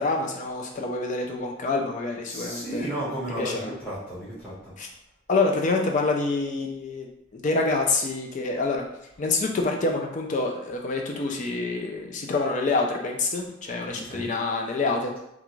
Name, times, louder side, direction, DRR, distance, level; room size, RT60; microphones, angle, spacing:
voice 1, 0.0-2.9 3.4-3.7 4.8-4.9 5.3-7.1 7.3-8.9 9.2-15.1, left 3 dB, 35° left, 2 dB, 0.3 m, -26 dB
voice 2, 2.2-4.7 13.9-14.3, right 1 dB, 5° left, -12 dB, 1.1 m, -33 dB
2.4 x 2.3 x 3.0 m, 0.84 s
head